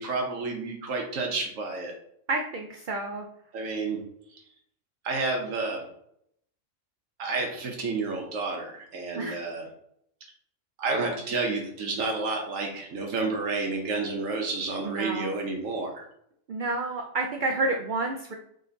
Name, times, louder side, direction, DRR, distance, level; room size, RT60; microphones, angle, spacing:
voice 1, 0.0-1.9 3.5-4.0 5.0-5.9 7.2-9.7 10.8-16.0, right 3 dB, 80° right, 1 dB, 1.2 m, -30 dB
voice 2, 2.3-3.2 9.2-9.4 14.8-15.3 16.5-18.3, right 2 dB, 65° right, 3 dB, 0.5 m, -29 dB
3.8 x 3.2 x 3.8 m, 0.71 s
omnidirectional pair, 1.3 m